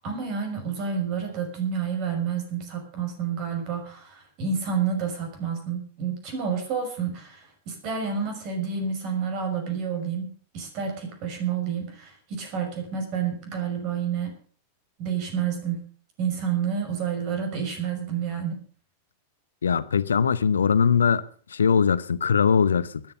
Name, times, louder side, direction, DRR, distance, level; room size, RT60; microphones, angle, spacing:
voice 1, 0.0-14.4 15.0-15.9 16.2-18.6, right 6 dB, 40° right, 5.9 m, -29 dB
voice 2, 19.6-21.2 21.5-23.0, left 6 dB, 70° left, 0.9 m, -21 dB
13.5 x 10.5 x 6.7 m
figure-of-eight pair, 90°, 0 cm